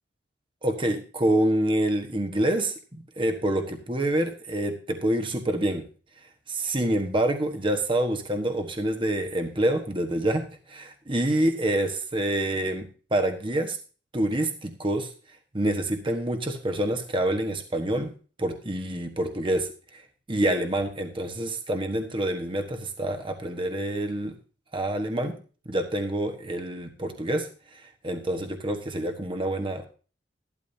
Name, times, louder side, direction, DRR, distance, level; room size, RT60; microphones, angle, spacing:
voice 1, 0.6-5.8 6.5-13.8 14.1-15.1 15.5-18.1 18.4-20.0 20.3-24.3 24.7-25.4 25.6-29.9, right 1 dB, 25° right, 5 dB, 1.4 m, -27 dB
14.5 x 12.0 x 2.8 m, 0.38 s
head